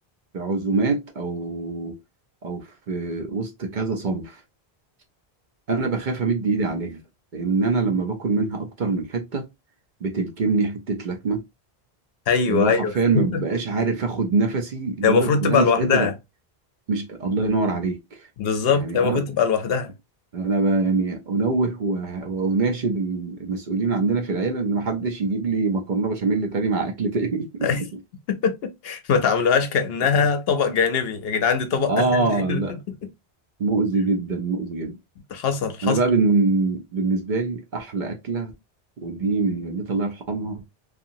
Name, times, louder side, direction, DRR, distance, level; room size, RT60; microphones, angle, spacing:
voice 1, 0.3-2.0 2.4-4.4 5.7-7.0 7.3-9.5 10.0-11.4 12.5-16.1 16.9-18.3 18.7-19.2 20.3-27.7 30.1-30.3 31.9-32.8 33.6-35.0 35.8-38.5 39.0-40.6, right 3 dB, 55° right, 0.7 m, -24 dB
voice 2, 12.3-13.4 15.0-16.1 18.4-19.9 27.6-27.8 28.4-32.6 35.3-36.0, left 6 dB, 70° left, 0.8 m, -22 dB
2.8 x 2.4 x 2.6 m
omnidirectional pair, 1.1 m